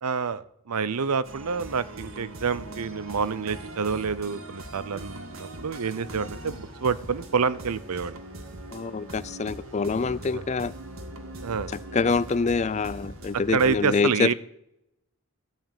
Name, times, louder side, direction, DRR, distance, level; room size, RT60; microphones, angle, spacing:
voice 1, 0.0-8.2 10.3-10.4 11.4-11.7 13.5-14.3, right 5 dB, 90° right, 17 dB, 0.6 m, -28 dB
sound 1, 1.2-13.8, right 1 dB, 65° right, 1.8 m, -41 dB
voice 2, 8.7-10.7 11.9-14.3, left 4 dB, 30° left, 18 dB, 0.3 m, -25 dB
14.0 x 5.4 x 9.0 m, 0.83 s
head